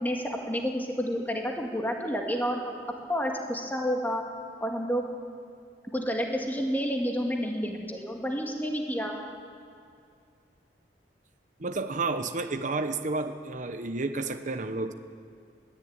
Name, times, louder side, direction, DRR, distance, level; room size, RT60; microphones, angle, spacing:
voice 1, 0.0-2.6 3.1-4.2 4.6-5.1 5.9-9.2, equal, 10° left, 1 dB, 2.1 m, -29 dB
voice 2, 11.6-14.9, right 3 dB, 45° right, 7 dB, 0.9 m, -31 dB
21.5 x 14.0 x 8.9 m, 2.4 s
head